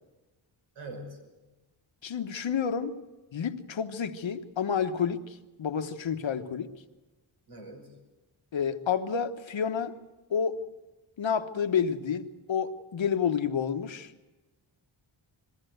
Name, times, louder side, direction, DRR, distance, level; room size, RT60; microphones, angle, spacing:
voice 1, 0.8-1.2 7.5-8.0, right 1 dB, 80° right, 5.9 m, -42 dB
voice 2, 2.0-3.0 3.3-6.7 8.5-9.9 10.3-10.5 11.2-14.3, left 7 dB, 70° left, 1.3 m, -30 dB
21.5 x 16.5 x 7.9 m
wide cardioid pair, 115°, 48 cm